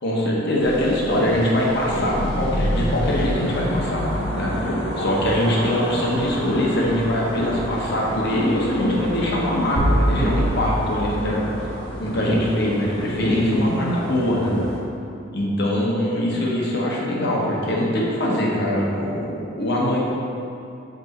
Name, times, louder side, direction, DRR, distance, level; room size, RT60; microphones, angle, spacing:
voice 1, 0.0-4.0 4.3-11.4 12.0-14.5 15.3-20.0, left 1 dB, 55° left, -3 dB, 1.0 m, -23 dB
sound 1, 0.6-14.8, equal, 75° left, 1.3 m, -28 dB
sound 2, 9.8-12.6, equal, 45° right, 0.5 m, -24 dB
6.1 x 4.1 x 4.2 m, 2.6 s
head